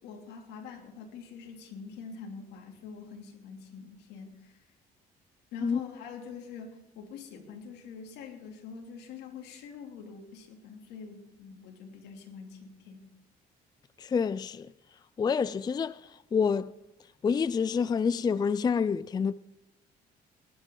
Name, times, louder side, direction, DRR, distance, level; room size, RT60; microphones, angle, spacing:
voice 1, 0.0-4.6 5.5-13.1, left 6 dB, 85° left, 3.0 m, -45 dB
voice 2, 14.0-14.7 15.2-16.0 16.3-16.7 17.2-19.3, left 6 dB, 25° left, 0.4 m, -27 dB
19.5 x 11.5 x 3.9 m
cardioid pair, 110°, 17 cm